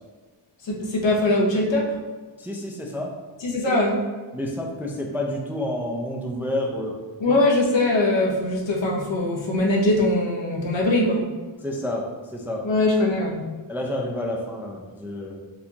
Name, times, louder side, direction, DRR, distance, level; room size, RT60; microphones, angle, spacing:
voice 1, 0.6-2.0 3.4-4.0 7.2-11.3 12.6-13.4, left 2 dB, 70° left, -2 dB, 0.9 m, -21 dB
voice 2, 2.4-3.1 3.7-3.8 4.3-7.0 7.3-7.4 11.6-12.6 13.7-15.4, left 1 dB, 5° right, 0 dB, 0.3 m, -29 dB
4.2 x 2.9 x 2.8 m, 1.3 s
wide cardioid pair, 125°, 47 cm